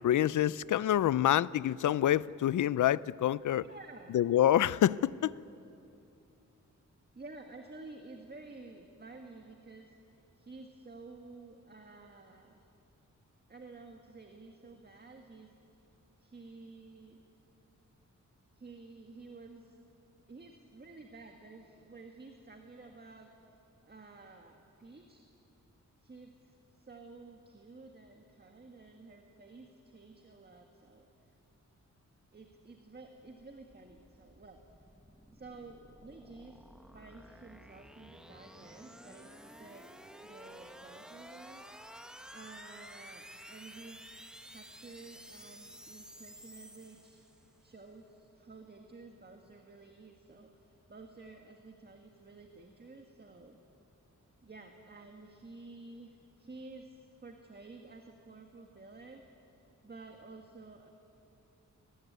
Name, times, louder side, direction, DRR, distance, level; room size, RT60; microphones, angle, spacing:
voice 1, 0.0-3.6 4.1-5.3, left 11 dB, 80° left, 0.5 m, -27 dB
voice 2, 3.6-4.1 7.1-12.6 13.5-15.5 16.2-17.2 18.5-19.8 20.3-23.3 23.8-25.3 26.0-31.3 32.3-34.6 35.3-36.7 36.9-39.3 39.6-39.9 40.2-41.6 42.3-44.1 44.4-53.6 54.4-59.2 59.8-60.9, right 3 dB, 30° right, 1.7 m, -52 dB
sound 1, 33.3-47.6, equal, ahead, 1.3 m, -52 dB
22.5 x 19.0 x 9.5 m
wide cardioid pair, 120°, 30 cm